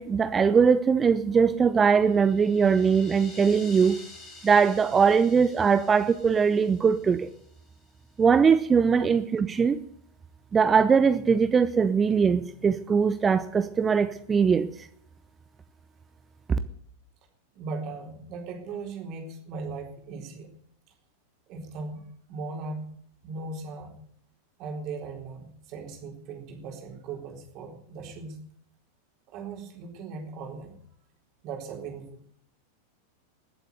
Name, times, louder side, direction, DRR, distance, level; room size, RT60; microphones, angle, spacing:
voice 1, 0.0-4.0 4.4-7.3 8.2-9.8 10.5-14.9 16.5-16.6, right 6 dB, 20° right, 12 dB, 0.7 m, -21 dB
sound 1, 1.8-8.0, left 3 dB, 30° left, 5.8 m, -49 dB
voice 2, 17.5-20.5 21.5-22.9 23.2-23.9 24.6-28.4 29.3-30.8 31.4-32.2, right 4 dB, 40° right, 2 dB, 4.1 m, -38 dB
20.0 x 7.9 x 8.0 m, 0.63 s
figure-of-eight pair, 90°, 0 cm